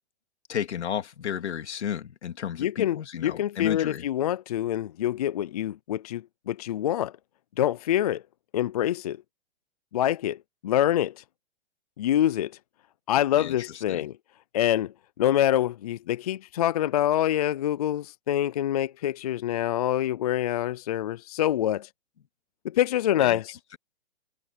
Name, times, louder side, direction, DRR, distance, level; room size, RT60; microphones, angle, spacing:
voice 1, 0.5-4.0 13.4-13.5 13.9-14.1 23.2-23.4, left 9 dB, 80° left, 2.9 m, -32 dB
voice 2, 2.6-7.1 7.6-8.2 8.5-9.2 9.9-11.2 12.0-12.5 13.1-14.1 14.5-21.9 22.6-23.6, left 12 dB, 35° left, 0.5 m, -26 dB
hypercardioid pair, 160°, 34 cm